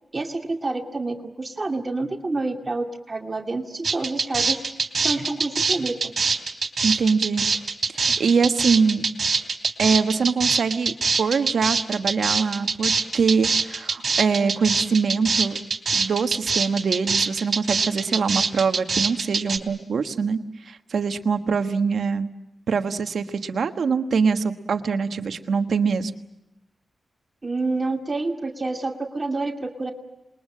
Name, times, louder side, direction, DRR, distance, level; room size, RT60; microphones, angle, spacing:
voice 1, 0.1-4.6 5.0-6.1 6.9-7.0 27.4-29.9, right 3 dB, 35° right, 3 dB, 2.3 m, -28 dB
sound 1, 3.8-19.6, right 4 dB, 55° right, 3.3 m, -23 dB
voice 2, 6.8-7.5 7.9-9.0 9.8-15.6 15.9-20.4 20.7-22.3 22.7-26.1, right 5 dB, 75° right, 8 dB, 1.3 m, -23 dB
27.5 x 22.0 x 7.5 m, 0.94 s
cardioid pair, 55°, 0 cm